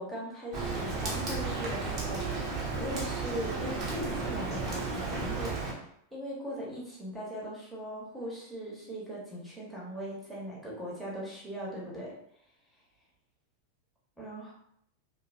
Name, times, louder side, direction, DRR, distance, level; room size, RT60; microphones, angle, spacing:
voice 1, 0.0-5.8 6.1-12.2 14.2-14.5, equal, 5° right, -5 dB, 0.9 m, -39 dB
Rain, 0.5-5.7, right 3 dB, 35° right, 0.6 m, -33 dB
2.5 x 2.0 x 2.5 m, 0.72 s
figure-of-eight pair, 90°, 0 cm